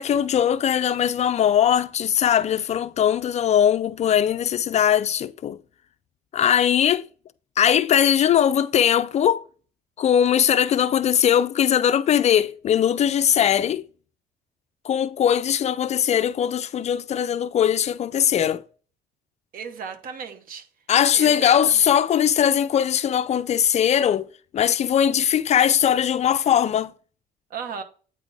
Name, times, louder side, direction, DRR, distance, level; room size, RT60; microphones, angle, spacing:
voice 1, 0.0-5.6 6.3-7.0 7.6-9.4 10.0-13.8 14.9-18.6 20.9-24.3 24.5-26.9, left 9 dB, 40° left, 0.4 m, -20 dB
voice 2, 19.5-20.6 21.1-21.9 27.5-27.8, right 6 dB, 55° right, 1.1 m, -35 dB
8.7 x 4.0 x 3.4 m
cardioid pair, 110°, 17 cm